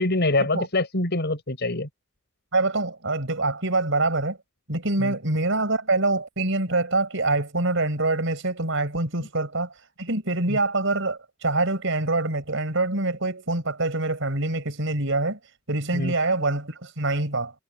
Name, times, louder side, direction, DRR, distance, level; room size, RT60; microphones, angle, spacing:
voice 1, 0.0-1.9 5.0-5.1 10.5-10.6 15.9-16.1, left 2 dB, 55° left, 6.0 m, -24 dB
voice 2, 2.5-4.4 4.7-9.7 10.0-15.4 15.7-17.5, right 2 dB, 65° right, 6.0 m, -25 dB
head